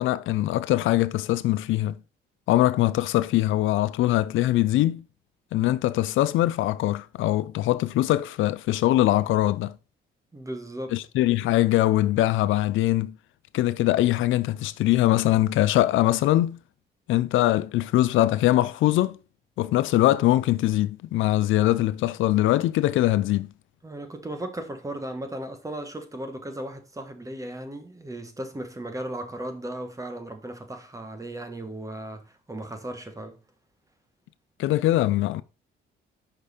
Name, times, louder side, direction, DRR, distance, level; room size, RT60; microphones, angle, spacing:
voice 1, 0.0-2.0 2.5-5.0 5.5-9.8 10.9-13.1 13.5-16.6 17.1-19.2 19.6-23.5 34.6-35.4, left 15 dB, 80° left, 0.4 m, -22 dB
voice 2, 10.3-11.0 23.8-33.4, right 1 dB, 15° right, 1.3 m, -36 dB
5.5 x 5.3 x 4.1 m
cardioid pair, 90°, 20 cm